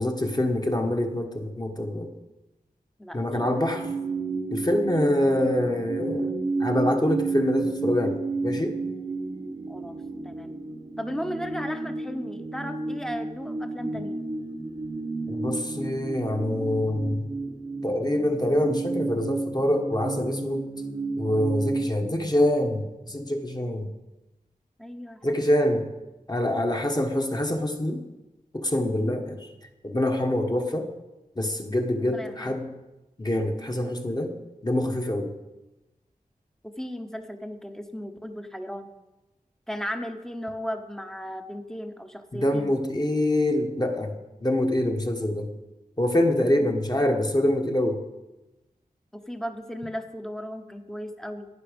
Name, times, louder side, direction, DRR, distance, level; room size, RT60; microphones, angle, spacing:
voice 1, 0.0-2.1 3.1-3.9 4.5-6.3 6.6-8.8 15.3-17.3 17.8-20.7 21.2-23.9 25.2-25.9 26.3-28.0 28.5-29.4 29.8-30.9 31.4-32.7 33.2-34.3 34.6-35.3 42.3-44.1 44.4-45.5 46.0-48.0, left 1 dB, 25° left, 3 dB, 1.4 m, -25 dB
sound 1, 3.3-21.9, right 3 dB, 35° right, 0.9 m, -32 dB
voice 2, 11.0-14.2 24.8-25.3 29.0-29.2 32.0-32.6 36.8-38.9 39.7-42.7 46.6-46.7 49.1-51.5, equal, 5° left, 7 dB, 0.9 m, -35 dB
11.5 x 9.7 x 5.3 m, 1.0 s
wide cardioid pair, 75°, 15 cm